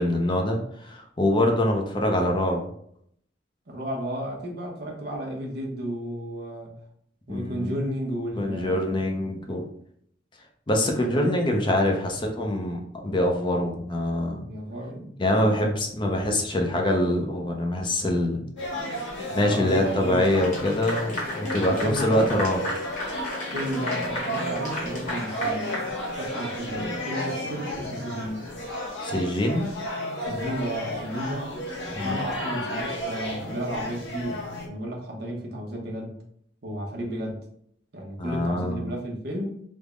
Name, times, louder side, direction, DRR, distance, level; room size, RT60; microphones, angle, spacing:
voice 1, 0.0-2.6 7.3-7.8 8.4-9.6 10.7-14.5 15.2-18.4 19.3-22.6 29.0-29.7 31.9-32.2 38.2-38.9, left 1 dB, 25° left, 2 dB, 0.5 m, -24 dB
voice 2, 3.7-6.7 7.3-9.0 10.9-11.3 14.5-15.7 19.2-20.4 21.8-22.4 23.5-25.9 26.2-28.5 30.2-31.5 31.9-36.2 36.6-37.4 37.9-39.6, equal, 60° right, 0 dB, 0.8 m, -33 dB
sound 1, 18.6-34.7, left 1 dB, 90° left, 0.9 m, -33 dB
Clapping / Applause, 20.2-26.6, left 1 dB, 45° left, 1.0 m, -35 dB
3.5 x 2.0 x 3.5 m, 0.67 s
head